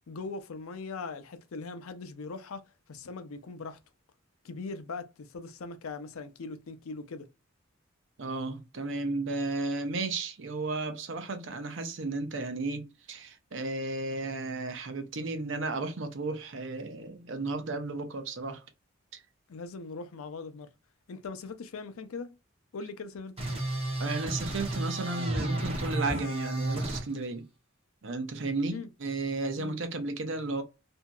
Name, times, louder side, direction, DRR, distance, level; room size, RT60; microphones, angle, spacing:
voice 1, 0.1-3.8 4.4-7.3 19.5-20.7 21.1-22.3 22.7-23.6 28.7-28.9 29.6-29.8, left 4 dB, 90° left, 0.5 m, -40 dB
voice 2, 8.2-18.6 19.1-19.2 24.0-27.4 28.0-30.6, right 3 dB, 60° right, 0.7 m, -34 dB
sound 1, 23.4-27.0, right 1 dB, 30° right, 0.8 m, -32 dB
2.8 x 2.7 x 2.2 m
head